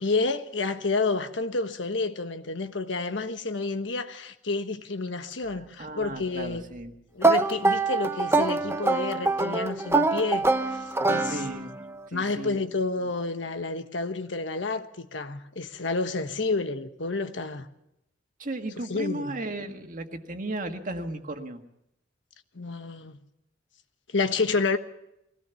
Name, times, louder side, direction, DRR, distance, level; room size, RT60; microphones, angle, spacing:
voice 1, 0.0-6.6 7.1-11.4 12.1-17.7 18.9-19.4 22.5-23.2 24.1-24.8, left 3 dB, 90° left, 1.3 m, -30 dB
voice 2, 5.5-6.9 11.3-11.7 12.1-12.6 13.0-13.1 18.4-21.6, right 2 dB, 45° right, 1.7 m, -35 dB
sound 1, 7.2-11.8, right 3 dB, 15° right, 0.8 m, -24 dB
22.0 x 17.0 x 7.1 m
head